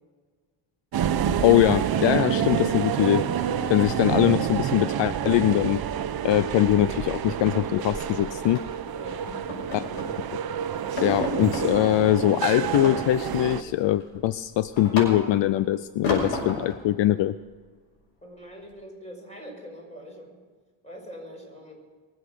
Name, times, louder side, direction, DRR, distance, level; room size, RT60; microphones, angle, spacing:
sound 1, 0.9-13.6, right 8 dB, 50° right, 0.9 m, -28 dB
voice 1, 1.4-3.3 3.7-5.8 6.2-8.6 9.7-9.9 11.0-17.3, left 14 dB, 70° left, 15 dB, 0.6 m, -22 dB
sound 2, 4.0-4.6 4.9-5.1 5.5-5.7 6.0-6.1 6.5-8.0 8.5-8.8 9.3-10.2 10.5-10.6 11.0-11.7 12.7-13.5 13.9-15.5 16.0-16.8, left 1 dB, 85° left, 5.8 m, -33 dB
voice 2, 8.9-9.4 18.2-20.4 20.8-21.7, equal, 15° left, 0 dB, 5.8 m, -43 dB
22.5 x 8.1 x 6.7 m, 1.5 s
cardioid pair, 100°, 46 cm